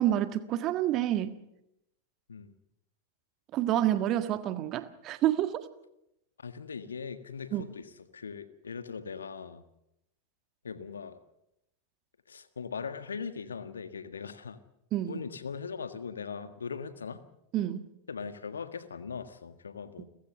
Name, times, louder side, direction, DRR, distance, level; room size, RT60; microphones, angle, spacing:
voice 1, 0.0-1.4 3.5-5.7 7.5-7.6 14.9-15.2 17.5-17.8, right 12 dB, 35° right, 11 dB, 1.6 m, -28 dB
voice 2, 6.4-9.6 10.6-11.2 12.3-14.6 15.1-17.2 18.1-20.0, left 6 dB, 70° left, 12 dB, 1.6 m, -40 dB
30.0 x 15.0 x 6.9 m, 0.84 s
figure-of-eight pair, 90°, 0 cm